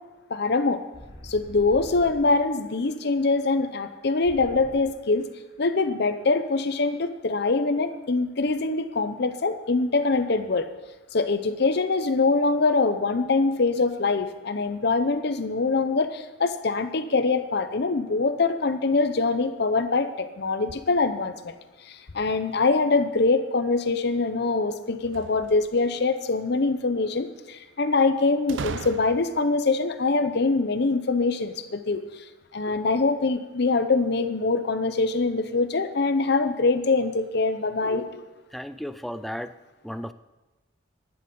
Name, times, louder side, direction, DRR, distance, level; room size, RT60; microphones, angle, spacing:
voice 1, 0.3-0.8 1.2-5.2 5.6-10.7 11.1-21.5 21.9-32.2 32.5-38.2, left 3 dB, 55° left, 10 dB, 0.7 m, -24 dB
sound 1, 0.9-4.8 5.1-5.3 5.7-5.9 6.2-6.3 6.6-6.8, equal, 25° left, 3.2 m, -44 dB
sound 2, 25.0-26.0 28.5-29.5, right 5 dB, 65° right, 0.5 m, -37 dB
voice 2, 38.5-39.5 39.8-40.1, equal, ahead, 12 dB, 0.3 m, -34 dB
11.0 x 10.0 x 5.4 m, 1.2 s
head